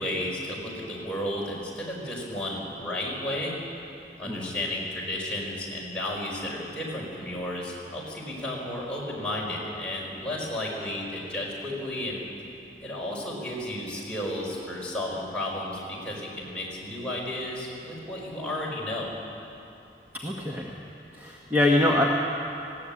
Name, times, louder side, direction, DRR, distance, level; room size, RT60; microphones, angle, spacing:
voice 1, 0.0-3.5 4.2-12.2 12.8-19.1, left 1 dB, 5° left, -5 dB, 5.0 m, -33 dB
voice 2, 20.2-20.7 21.1-22.0, left 1 dB, 10° right, -2 dB, 1.6 m, -24 dB
20.5 x 17.5 x 8.6 m, 2.8 s
head